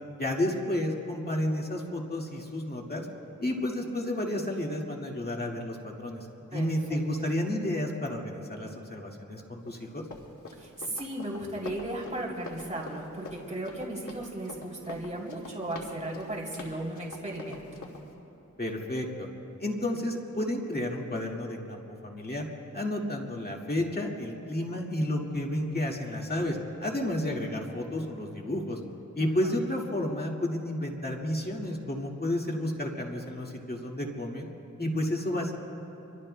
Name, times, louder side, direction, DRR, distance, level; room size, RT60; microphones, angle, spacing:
voice 1, 0.2-3.1 3.4-10.1 18.6-19.3 19.6-22.5 22.7-28.8 29.1-34.5 34.8-35.5, left 1 dB, 30° left, 0 dB, 1.9 m, -31 dB
voice 2, 6.5-7.0 10.6-17.7 29.2-29.5, right 1 dB, 25° right, -3 dB, 3.2 m, -36 dB
Run, 9.7-18.1, left 3 dB, 80° left, 2.4 m, -45 dB
26.0 x 25.0 x 2.2 m, 3.0 s
wide cardioid pair, 90°, 31 cm